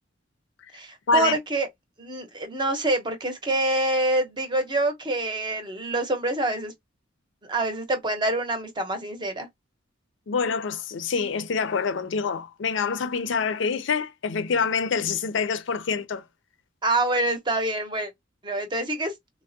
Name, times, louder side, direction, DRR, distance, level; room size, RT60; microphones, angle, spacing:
voice 1, 0.7-1.7 2.0-6.7 7.4-9.5 16.8-18.1 18.4-19.1, right 2 dB, 25° right, 0.7 m, -26 dB
voice 2, 10.3-16.2, left 5 dB, 65° left, 0.5 m, -26 dB
3.4 x 2.0 x 2.6 m
head